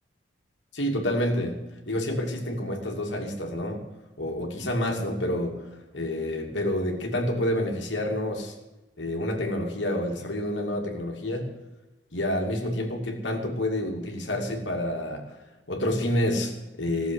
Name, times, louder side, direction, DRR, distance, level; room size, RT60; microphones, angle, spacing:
voice 1, 0.7-1.6 1.9-3.8 4.2-8.5 9.0-11.5 12.1-15.4 15.7-17.1, left 1 dB, 85° left, 1 dB, 2.5 m, -28 dB
15.0 x 7.3 x 9.2 m, 1.0 s
head